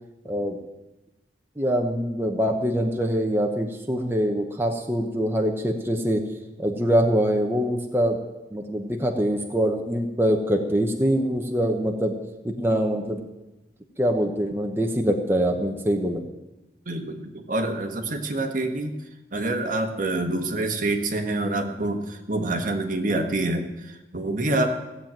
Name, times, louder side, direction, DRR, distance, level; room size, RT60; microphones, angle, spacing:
voice 1, 0.2-0.6 1.6-6.2 6.6-8.2 8.5-12.2 12.4-13.3 14.0-16.3, equal, 15° right, 2 dB, 1.0 m, -24 dB
voice 2, 16.8-19.0 19.3-24.7, right 2 dB, 50° right, 5 dB, 1.5 m, -26 dB
16.0 x 7.7 x 8.9 m, 1.0 s
head